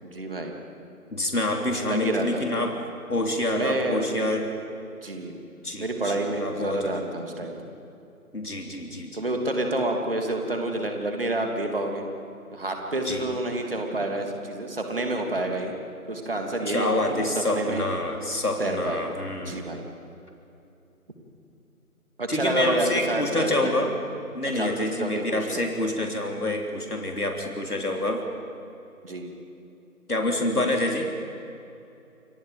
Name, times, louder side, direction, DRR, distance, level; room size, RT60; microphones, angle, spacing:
voice 1, 0.0-0.5 1.8-2.4 3.1-3.3 3.5-4.4 5.0-5.4 5.8-7.6 9.1-12.0 12.5-15.7 16.1-17.9 18.6-19.0 19.4-19.8 22.2-23.8 24.5-25.6 29.0-29.2 30.5-30.6, right 1 dB, 40° right, 3 dB, 3.0 m, -29 dB
voice 2, 1.1-2.8 3.1-4.5 5.6-6.9 8.3-9.1 13.1-13.3 16.7-19.6 22.3-23.9 24.3-28.2 30.1-31.1, left 1 dB, 80° left, 2 dB, 3.6 m, -27 dB
28.5 x 24.0 x 5.1 m, 2.8 s
figure-of-eight pair, 165°, 45 cm